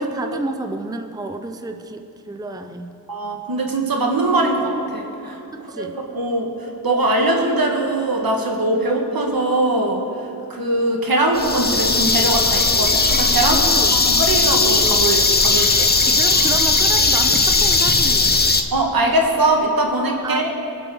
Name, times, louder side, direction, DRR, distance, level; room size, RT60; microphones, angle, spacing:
voice 1, 0.0-3.0 5.5-6.0 13.5-13.9 16.1-18.4 20.2-20.5, right 2 dB, 10° right, 6 dB, 0.6 m, -30 dB
voice 2, 3.1-5.4 5.8-5.9 6.1-6.5 6.8-10.0 10.5-13.6 13.9-15.9 18.7-20.5, right 2 dB, 70° right, 1 dB, 1.7 m, -21 dB
sound 1, 11.3-18.6, left 3 dB, 25° left, 0.7 m, -17 dB
22.0 x 8.0 x 3.8 m, 2.7 s
wide cardioid pair, 65°, 37 cm